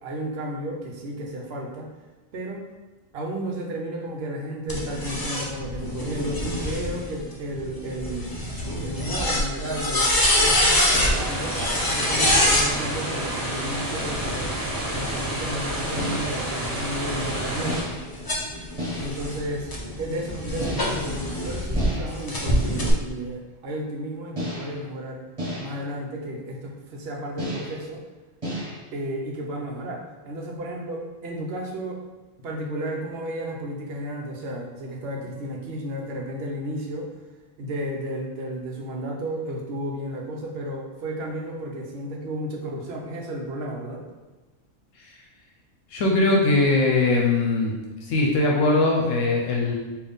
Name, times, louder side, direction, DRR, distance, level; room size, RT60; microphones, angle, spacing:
voice 1, 0.0-1.9 2.3-2.7 3.1-8.4 8.8-11.6 11.8-14.5 14.8-17.8 18.9-19.7 20.0-25.2 25.6-28.0 28.9-32.0 32.4-37.1 37.6-44.0, right 1 dB, 60° right, 0 dB, 0.8 m, -33 dB
sound 1, 4.7-12.7 13.8-16.2 16.8-21.8 22.3-22.9, left 1 dB, 30° left, 0.4 m, -26 dB
sound 2, 11.0-17.8, right 1 dB, 15° left, 1.2 m, -30 dB
sound 3, 16.0-16.5 17.7-18.2 18.8-19.3 20.6-21.2 21.8-22.3 24.4-24.9 25.4-25.9 27.4-27.9 28.4-28.8, equal, 25° right, 1.3 m, -33 dB
voice 2, 45.9-47.7 48.0-49.8, left 2 dB, 80° left, -1 dB, 1.0 m, -21 dB
3.9 x 2.6 x 3.5 m, 1.2 s
omnidirectional pair, 1.3 m